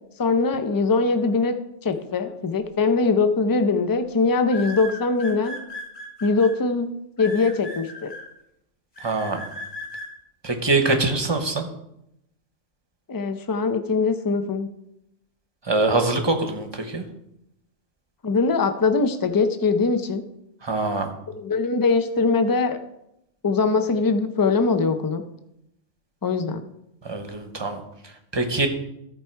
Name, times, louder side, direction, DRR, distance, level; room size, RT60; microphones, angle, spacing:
voice 1, 0.2-1.5 1.8-5.6 6.2-6.9 7.2-8.1 13.1-14.7 18.2-20.2 21.3-22.8 23.4-25.2 26.2-26.6, left 4 dB, 25° left, 8 dB, 0.5 m, -22 dB
sound 1, 3.0-3.3 4.5-6.5 7.2-8.2 9.0-10.1, left 1 dB, 55° left, 3.0 m, -36 dB
voice 2, 9.0-9.4 10.4-11.7 15.7-17.0 20.6-21.1 27.1-27.8 28.3-28.7, right 3 dB, 25° right, 5 dB, 1.0 m, -23 dB
14.0 x 4.8 x 4.6 m, 0.82 s
omnidirectional pair, 1.2 m